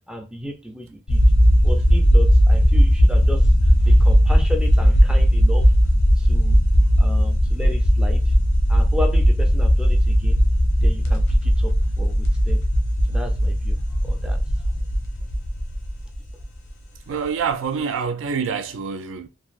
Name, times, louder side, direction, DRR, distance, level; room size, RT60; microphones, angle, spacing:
voice 1, 0.1-1.3 1.6-3.5 3.8-5.7 6.2-6.6 7.0-8.3 8.7-10.4 10.8-12.6 13.1-14.4, left 1 dB, 5° right, 0.3 m, -34 dB
sound 1, 1.1-16.7, equal, 90° left, 0.8 m, -17 dB
voice 2, 17.1-19.3, right 6 dB, 80° right, 0.4 m, -26 dB
3.2 x 2.4 x 2.4 m
head